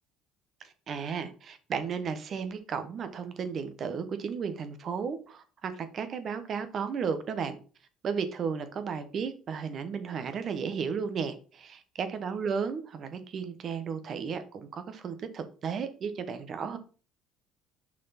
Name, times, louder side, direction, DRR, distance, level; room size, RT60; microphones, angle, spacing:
voice 1, 0.6-7.6 8.0-16.8, right 6 dB, 45° right, 10 dB, 1.1 m, -34 dB
6.1 x 4.7 x 5.7 m, 0.37 s
cardioid pair, 120°, 0 cm